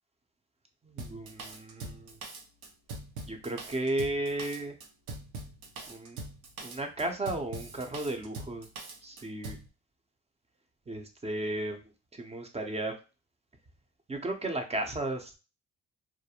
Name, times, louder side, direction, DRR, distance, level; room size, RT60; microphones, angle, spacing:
voice 1, 0.8-2.2 3.3-4.7 5.9-6.2 6.6-8.7 9.0-9.6 10.9-11.8 12.1-13.0 14.1-15.4, right 2 dB, 20° right, 5 dB, 0.5 m, -34 dB
Drum kit, 1.0-9.7, right 3 dB, 85° right, 0.7 m, -42 dB
2.4 x 2.1 x 2.8 m, 0.31 s
cardioid pair, 90°, 30 cm